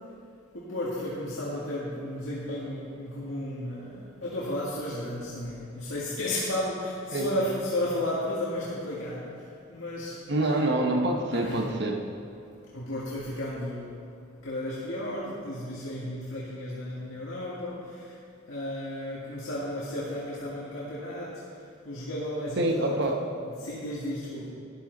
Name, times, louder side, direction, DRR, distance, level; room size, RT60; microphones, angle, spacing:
voice 1, 0.5-10.7 11.4-11.6 12.7-14.0 14.4-18.2 18.5-21.4 21.8-23.0 23.4-24.5, left 1 dB, 85° left, -7 dB, 2.0 m, -33 dB
voice 2, 10.3-12.1 22.6-23.2, right 1 dB, 60° right, 2 dB, 1.2 m, -26 dB
13.0 x 10.5 x 4.0 m, 2.5 s
head